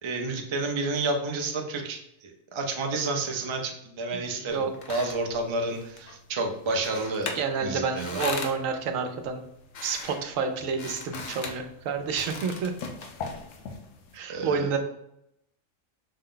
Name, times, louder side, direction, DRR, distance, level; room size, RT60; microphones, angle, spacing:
voice 1, 0.0-8.2 14.3-14.7, right 3 dB, 45° right, 2 dB, 0.3 m, -30 dB
voice 2, 4.4-4.7 7.3-9.4 9.8-12.7 14.1-14.8, right 5 dB, 75° right, 6 dB, 1.0 m, -29 dB
sound 1, 4.5-14.2, left 4 dB, 70° left, 1.0 m, -40 dB
5.5 x 2.2 x 3.8 m, 0.79 s
omnidirectional pair, 1.4 m